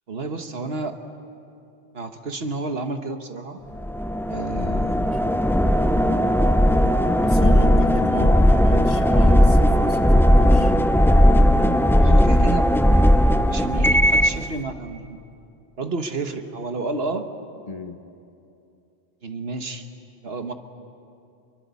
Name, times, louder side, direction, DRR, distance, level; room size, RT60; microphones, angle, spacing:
voice 1, 0.1-1.0 1.9-3.6 4.3-5.1 7.8-7.9 12.0-12.7 13.5-15.2 15.8-17.3 19.2-19.9 20.2-20.5, right 3 dB, 60° right, 7 dB, 1.6 m, -30 dB
sound 1, 3.8-14.4, equal, 5° left, 0.4 m, -17 dB
voice 2, 7.2-10.7 17.7-18.0, left 2 dB, 35° left, 7 dB, 1.1 m, -35 dB
25.5 x 23.0 x 8.3 m, 2.6 s
omnidirectional pair, 1.1 m